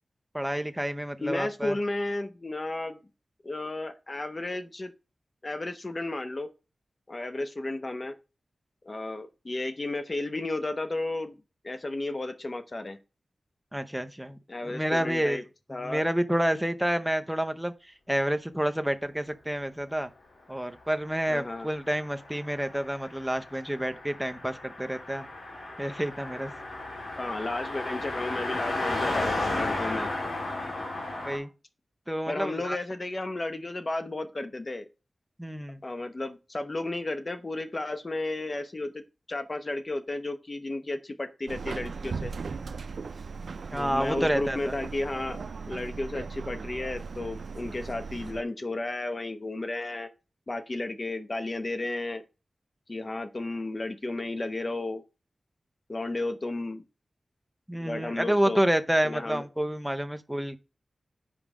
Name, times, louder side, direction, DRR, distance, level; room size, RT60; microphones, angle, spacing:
voice 1, 0.3-1.8 13.7-15.4 15.8-17.7 18.1-20.1 20.5-25.3 25.8-26.5 31.2-31.5 32.1-32.8 35.4-35.8 43.7-44.6 57.7-60.6, equal, 5° right, 0.7 m, -29 dB
voice 2, 1.2-3.1 3.4-4.9 5.4-6.5 7.1-8.2 8.8-11.4 11.6-13.0 14.5-15.4 15.7-16.0 21.3-21.7 27.2-30.1 32.3-34.9 35.8-39.0 39.3-42.3 43.7-50.1 50.5-52.2 52.9-55.0 55.9-56.8 57.7-58.6 59.0-59.4, left 2 dB, 35° left, 0.9 m, -33 dB
Car passing by, 21.2-31.4, left 2 dB, 70° left, 2.9 m, -34 dB
Subway metro underground, 41.5-48.4, right 4 dB, 80° right, 0.4 m, -38 dB
5.4 x 4.9 x 6.1 m
wide cardioid pair, 90°, 0 cm